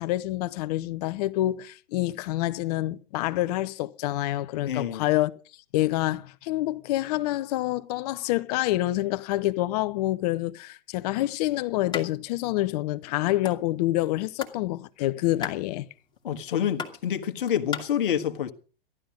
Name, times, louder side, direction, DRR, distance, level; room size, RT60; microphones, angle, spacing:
voice 1, 0.0-5.3 5.7-15.9, left 16 dB, 45° left, 0.8 m, -27 dB
voice 2, 4.6-5.0 16.2-18.5, left 9 dB, 65° left, 1.5 m, -27 dB
sound 1, 11.9-12.1 12.4-12.5 12.8-13.6 14.1-14.6 14.9-17.8, left 6 dB, 15° left, 2.0 m, -36 dB
14.5 x 12.0 x 5.2 m
figure-of-eight pair, 105°, 29 cm